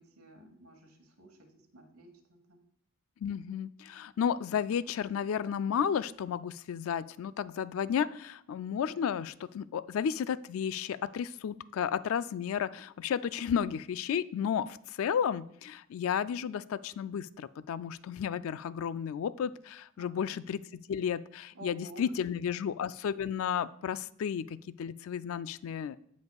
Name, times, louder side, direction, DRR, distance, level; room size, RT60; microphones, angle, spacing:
voice 1, 0.0-1.5 1.7-2.1 2.5-2.6 20.0-20.3 21.5-22.3, right 1 dB, 90° right, 4 dB, 1.4 m, -51 dB
voice 2, 3.2-26.0, left 8 dB, 70° left, 15 dB, 0.3 m, -33 dB
15.5 x 5.4 x 2.3 m, 0.68 s
head